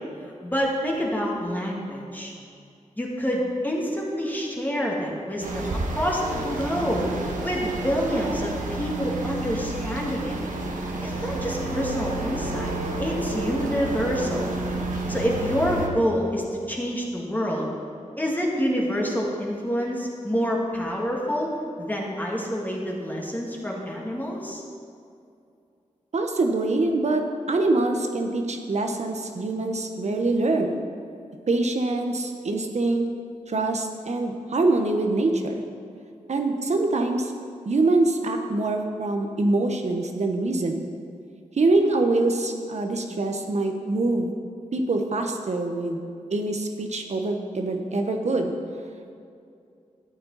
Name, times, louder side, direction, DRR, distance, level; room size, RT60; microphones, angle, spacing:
voice 1, 0.4-2.3 3.0-5.7 6.0-10.4 11.0-14.5 15.1-17.7 18.2-21.5 21.8-24.6, equal, 15° left, -3 dB, 2.0 m, -27 dB
sound 1, 5.4-15.9, right 2 dB, 90° right, 1.3 m, -30 dB
voice 2, 26.1-30.8 31.5-33.0 33.5-35.6 36.3-37.3 37.6-40.8 41.5-44.3 44.7-46.0 46.3-48.5, right 2 dB, 60° right, 4 dB, 1.1 m, -24 dB
12.5 x 8.7 x 4.1 m, 2.5 s
wide cardioid pair, 70°, 13 cm